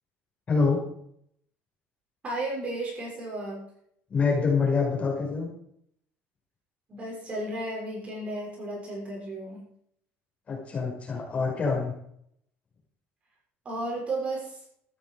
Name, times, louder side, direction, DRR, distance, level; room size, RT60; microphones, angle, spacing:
voice 1, 0.5-0.8 4.1-5.5 10.5-11.9, left 4 dB, 30° left, 0 dB, 5.2 m, -25 dB
voice 2, 2.2-3.7 6.9-9.7 13.6-14.6, right 2 dB, 25° right, -2 dB, 6.5 m, -33 dB
14.5 x 12.0 x 4.9 m, 0.68 s
cardioid pair, 150°, 5 cm